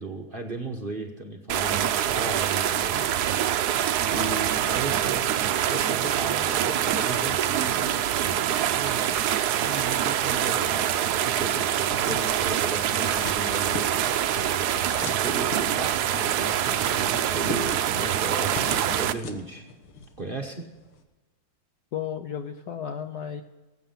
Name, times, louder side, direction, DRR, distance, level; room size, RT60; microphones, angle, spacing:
voice 1, 0.0-3.1 4.1-10.9 11.2-14.7 15.0-19.7 20.2-20.7, right 3 dB, 35° right, 2 dB, 1.0 m, -35 dB
sound 1, 1.5-19.1, right 10 dB, 70° right, 0.9 m, -25 dB
sound 2, 11.4-21.0, left 4 dB, 85° left, 2.2 m, -42 dB
voice 2, 21.9-23.4, left 8 dB, 65° left, 8 dB, 1.0 m, -33 dB
19.5 x 8.5 x 5.8 m, 1.2 s
omnidirectional pair, 2.3 m